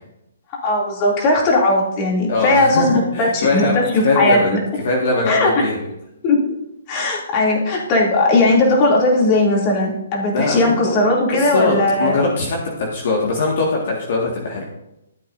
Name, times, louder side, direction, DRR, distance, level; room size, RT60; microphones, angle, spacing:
voice 1, 0.6-4.6 5.3-5.5 6.2-6.4 6.9-12.2, left 2 dB, 35° left, -2 dB, 2.7 m, -17 dB
voice 2, 2.3-4.5 4.8-5.8 10.3-11.0 11.3-14.6, left 3 dB, 55° left, -2 dB, 1.8 m, -21 dB
14.0 x 8.3 x 2.7 m, 0.87 s
figure-of-eight pair, 130°, 0 cm